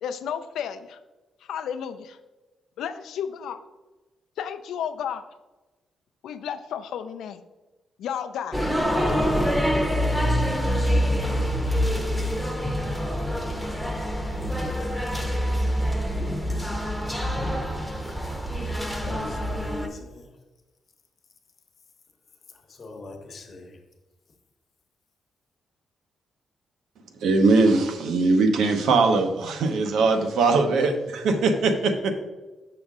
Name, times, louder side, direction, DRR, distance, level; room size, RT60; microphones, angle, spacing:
voice 1, 0.0-1.0 1.4-2.2 2.8-3.6 4.4-5.3 6.2-7.4 8.0-8.7, left 8 dB, 90° left, 0.4 m, -32 dB
sound 1, 8.5-19.9, equal, ahead, 0.7 m, -25 dB
voice 2, 14.0-14.5 18.6-20.3 22.8-23.7, left 2 dB, 40° left, 0.9 m, -40 dB
voice 3, 27.2-32.1, right 3 dB, 80° right, 0.8 m, -21 dB
6.3 x 5.8 x 3.6 m
cardioid pair, 145°, 0 cm